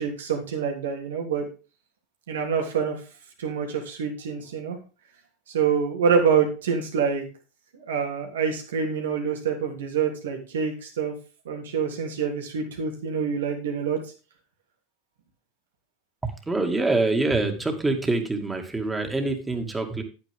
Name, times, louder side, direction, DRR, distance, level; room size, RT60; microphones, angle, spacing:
voice 1, 0.0-1.5 2.3-3.0 3.4-4.8 5.5-7.3 7.7-11.1 11.4-14.0, right 6 dB, 80° right, 2 dB, 3.1 m, -26 dB
voice 2, 16.2-20.0, right 2 dB, 15° right, 4 dB, 2.5 m, -25 dB
10.5 x 9.3 x 3.8 m, 0.32 s
hypercardioid pair, 90°, 0 cm